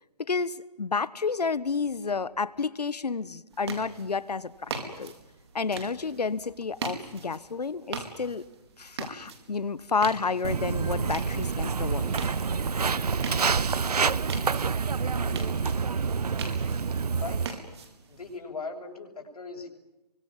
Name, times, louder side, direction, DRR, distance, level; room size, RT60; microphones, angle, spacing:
voice 1, 0.2-4.7 5.0-5.1 5.5-8.4 8.8-12.1, left 4 dB, 90° left, 17 dB, 1.4 m, -30 dB
sound 1, 3.5-18.4, right 4 dB, 45° right, 4.9 m, -42 dB
Walk footsteps, 10.4-17.5, right 5 dB, 80° right, 1.1 m, -27 dB
voice 2, 13.5-14.2 15.0-15.7 17.2-17.6 18.1-19.7, left 4 dB, 70° left, 1 dB, 7.6 m, -41 dB
30.0 x 24.5 x 7.4 m, 0.96 s
hypercardioid pair, 160°, 20 cm